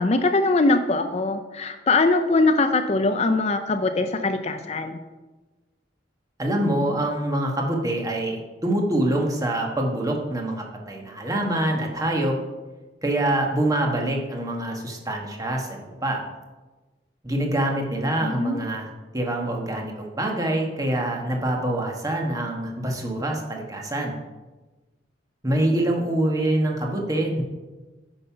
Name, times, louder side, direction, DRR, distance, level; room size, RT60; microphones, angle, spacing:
voice 1, 0.0-5.0 18.2-18.6, left 3 dB, 35° left, 8 dB, 0.5 m, -22 dB
voice 2, 6.4-12.4 13.0-16.2 17.2-24.2 25.4-27.4, right 1 dB, 20° right, 1 dB, 1.4 m, -25 dB
9.2 x 5.6 x 5.7 m, 1.2 s
head